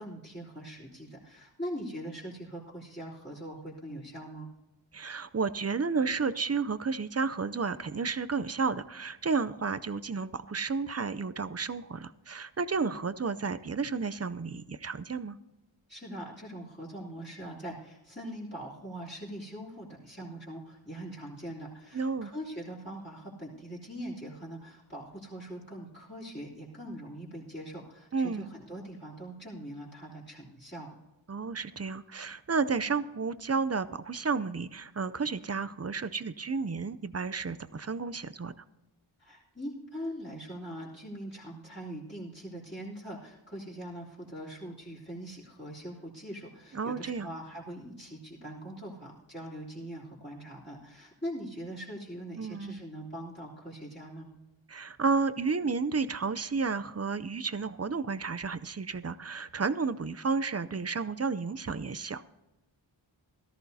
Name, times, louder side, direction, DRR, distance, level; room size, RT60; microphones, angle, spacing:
voice 1, 0.0-4.5 15.9-30.9 39.2-54.3, equal, 20° left, -9 dB, 3.3 m, -42 dB
voice 2, 4.9-15.4 21.9-22.3 28.1-28.5 31.3-38.5 46.7-47.3 52.4-52.8 54.7-62.2, right 4 dB, 35° right, 13 dB, 0.5 m, -32 dB
17.5 x 13.5 x 2.8 m, 1.0 s
wide cardioid pair, 50°, 48 cm